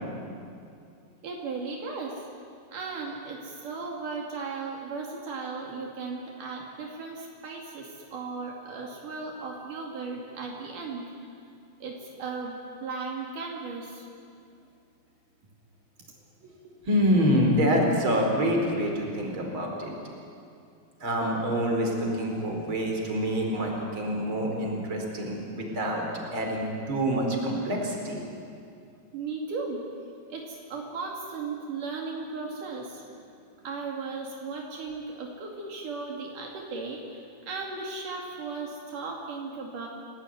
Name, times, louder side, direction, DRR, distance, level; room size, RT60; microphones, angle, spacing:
voice 1, 1.2-2.3 2.7-11.1 11.8-14.1 29.1-29.8 30.3-33.3 33.6-39.9, right 4 dB, 75° right, -1 dB, 4.0 m, -36 dB
voice 2, 16.9-19.9 21.0-26.0 26.3-28.2, equal, 35° right, 1 dB, 5.1 m, -26 dB
30.0 x 19.0 x 9.5 m, 2.4 s
omnidirectional pair, 3.7 m